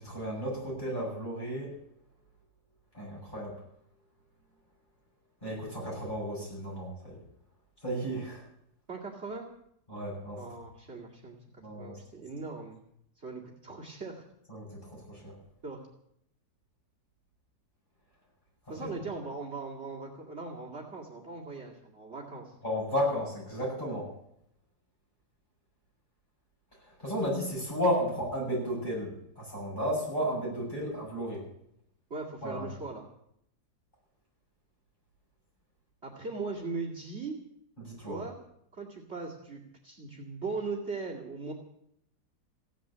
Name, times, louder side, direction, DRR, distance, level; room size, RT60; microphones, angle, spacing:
voice 1, 0.0-1.7 2.9-3.6 5.4-7.2 7.8-8.4 9.9-10.4 11.6-12.0 14.5-15.3 18.8-18.9 22.6-24.1 27.0-31.4 32.4-32.7 37.8-38.2, equal, 30° left, -3 dB, 7.7 m, -33 dB
voice 2, 8.9-9.5 10.4-11.4 11.8-12.8 13.2-14.2 15.6-15.9 18.7-22.5 32.1-33.1 36.0-37.4 38.0-38.4 38.7-41.5, right 4 dB, 40° right, 1 dB, 2.5 m, -39 dB
16.0 x 10.0 x 8.5 m, 0.75 s
omnidirectional pair, 1.7 m